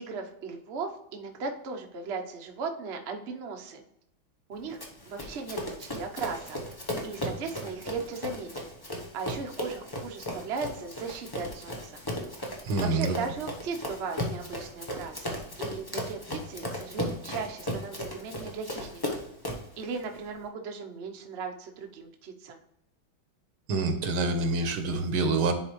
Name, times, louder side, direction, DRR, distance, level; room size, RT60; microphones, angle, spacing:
voice 1, 0.0-3.8 4.5-4.8 5.1-8.6 9.1-12.0 12.8-19.2 19.8-22.6, right 4 dB, 50° right, 3 dB, 0.8 m, -37 dB
Run, 4.8-19.7, left 1 dB, 40° left, 0.3 m, -36 dB
voice 2, 12.6-13.2 23.7-25.5, right 3 dB, 85° right, 7 dB, 1.7 m, -26 dB
10.0 x 4.1 x 3.1 m, 0.81 s
omnidirectional pair, 2.3 m